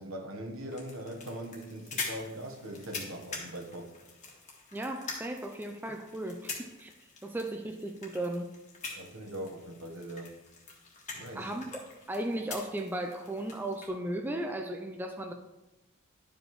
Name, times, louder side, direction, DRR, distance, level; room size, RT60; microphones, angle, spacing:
voice 1, 0.0-3.9 8.9-10.3 11.1-11.5, right 1 dB, 65° right, 1 dB, 1.1 m, -41 dB
sound 1, 0.7-13.9, left 4 dB, 35° left, 1.4 m, -44 dB
voice 2, 4.7-6.9 7.2-8.5 11.3-11.8 12.1-15.3, right 1 dB, 10° right, 4 dB, 0.3 m, -36 dB
11.0 x 5.1 x 3.0 m, 1.1 s
head